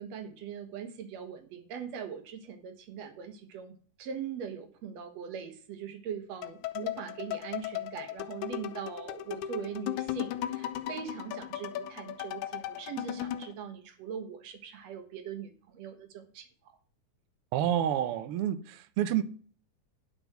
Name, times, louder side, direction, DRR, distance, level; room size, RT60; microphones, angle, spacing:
voice 1, 0.0-3.7 4.0-16.5, right 7 dB, 65° right, 2.3 m, -41 dB
sound 1, 6.4-13.5, left 12 dB, 85° left, 2.1 m, -36 dB
voice 2, 17.5-19.2, right 10 dB, 85° right, 1.2 m, -29 dB
10.0 x 6.2 x 6.0 m
omnidirectional pair, 3.5 m